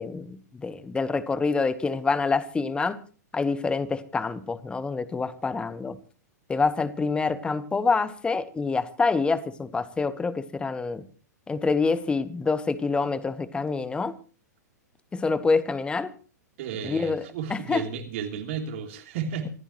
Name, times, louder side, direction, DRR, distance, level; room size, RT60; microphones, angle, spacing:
voice 1, 0.0-3.0 3.3-6.0 6.5-11.0 11.5-14.2 15.1-16.1 16.8-17.2 17.5-17.8, left 4 dB, 10° left, 16 dB, 1.2 m, -26 dB
voice 2, 16.6-19.5, right 7 dB, 45° right, 4 dB, 3.1 m, -33 dB
26.5 x 14.5 x 3.1 m, 0.37 s
figure-of-eight pair, 100°, 9 cm